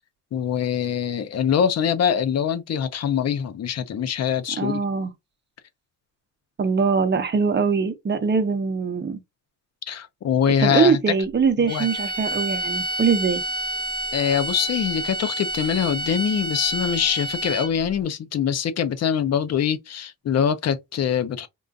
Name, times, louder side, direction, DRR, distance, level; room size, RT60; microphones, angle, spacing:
voice 1, 0.3-4.8 9.9-11.1 11.6-11.9 14.1-21.5, left 8 dB, 50° left, 0.6 m, -23 dB
voice 2, 4.6-5.1 6.6-9.2 10.6-13.4, right 5 dB, 35° right, 0.7 m, -22 dB
sound 1, 11.7-17.9, right 1 dB, 15° left, 0.9 m, -29 dB
3.8 x 2.4 x 2.4 m
wide cardioid pair, 145°, 33 cm